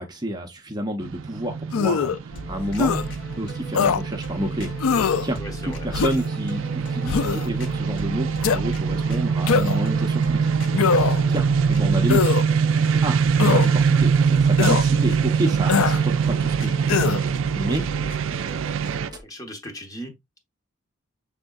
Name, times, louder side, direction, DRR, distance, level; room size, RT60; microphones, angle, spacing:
voice 1, 0.0-4.7 5.2-10.5 11.3-12.3 12.7-16.9 17.5-17.8, right 1 dB, 20° right, 0.6 m, -30 dB
sound 1, 1.0-19.1, right 6 dB, 70° right, 0.4 m, -23 dB
sound 2, 1.7-2.2 2.8-3.0 3.7-4.0 4.8-5.3 5.9-6.3 7.1-7.5 8.4-8.6 9.5-9.9 10.7-11.3 12.1-12.4 13.4-13.7 14.6-14.8 15.7-16.0 16.9-17.2, left 6 dB, 85° left, 0.4 m, -21 dB
sound 3, 2.3-19.2, left 2 dB, 60° left, 0.9 m, -39 dB
voice 2, 5.4-5.9 11.2-11.4 19.2-20.4, equal, 15° left, 0.9 m, -38 dB
6.5 x 3.5 x 2.3 m
head